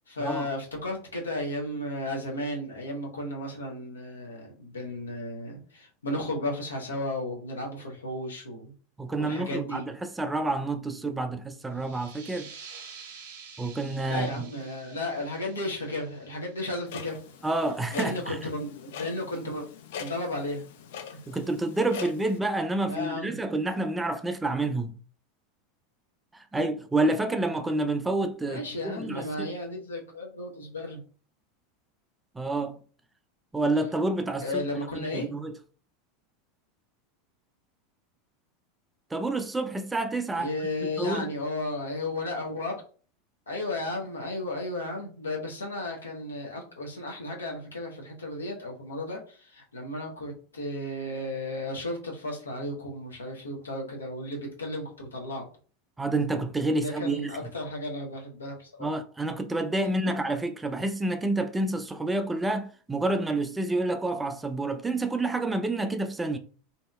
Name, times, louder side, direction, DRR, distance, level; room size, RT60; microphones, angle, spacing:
voice 1, 0.1-8.7 9.2-9.9 14.1-17.2 17.9-19.7 20.0-20.6 22.9-23.4 28.5-31.0 34.4-35.3 40.3-42.8 43.5-55.5 56.7-58.9, left 1 dB, 80° left, 0.8 m, -34 dB
voice 2, 9.0-12.5 13.6-14.5 17.4-18.4 21.3-24.9 26.3-29.5 32.3-32.8 33.5-34.6 35.0-35.5 39.1-40.5 41.0-41.3 56.0-57.3 58.8-66.4, right 2 dB, 10° right, 0.4 m, -28 dB
sound 1, 11.7-17.1, right 6 dB, 65° right, 0.8 m, -48 dB
Clock, 16.9-22.4, left 7 dB, 65° left, 0.4 m, -42 dB
2.7 x 2.7 x 2.3 m
figure-of-eight pair, 85°, 0 cm